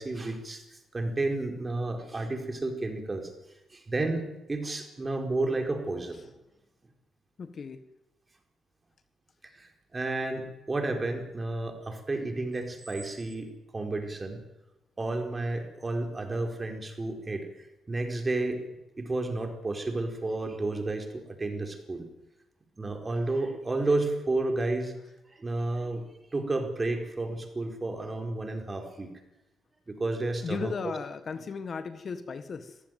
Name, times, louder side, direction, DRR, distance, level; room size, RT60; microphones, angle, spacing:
voice 1, 0.0-6.3 9.4-14.4 15.0-18.6 19.0-22.1 22.8-24.9 25.3-29.1 29.9-30.7, right 2 dB, 25° right, 4 dB, 4.5 m, -32 dB
voice 2, 7.4-7.8 17.1-17.2 30.4-32.8, left 5 dB, 45° left, 11 dB, 1.5 m, -36 dB
24.5 x 15.5 x 9.3 m, 0.97 s
cardioid pair, 90°, 0 cm